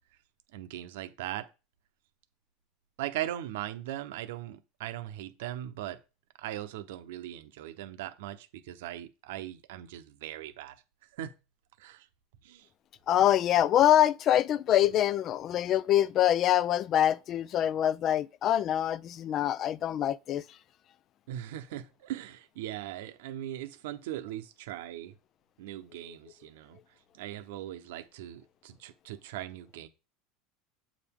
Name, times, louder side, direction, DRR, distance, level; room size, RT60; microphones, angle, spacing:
voice 1, 0.5-1.5 3.0-6.0 6.4-10.8 11.1-11.3 11.8-12.1 12.4-12.7 21.3-25.1 25.6-26.8 27.1-29.9, right 13 dB, 80° right, 0.9 m, -39 dB
voice 2, 13.1-20.4, left 11 dB, 40° left, 0.4 m, -25 dB
8.1 x 5.0 x 3.7 m
supercardioid pair, 120°, 0 cm